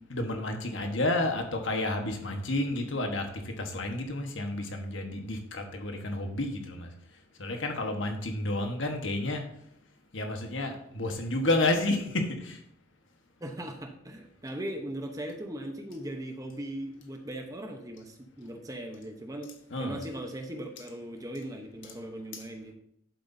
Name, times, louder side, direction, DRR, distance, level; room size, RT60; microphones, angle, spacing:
voice 1, 0.1-6.9 7.4-9.4 10.1-12.6 19.7-20.0 22.3-22.4, left 2 dB, 65° left, 4 dB, 1.3 m, -30 dB
voice 2, 13.4-19.5 19.8-22.7, right 1 dB, 15° right, 4 dB, 0.9 m, -39 dB
11.0 x 8.1 x 2.7 m, 0.72 s
head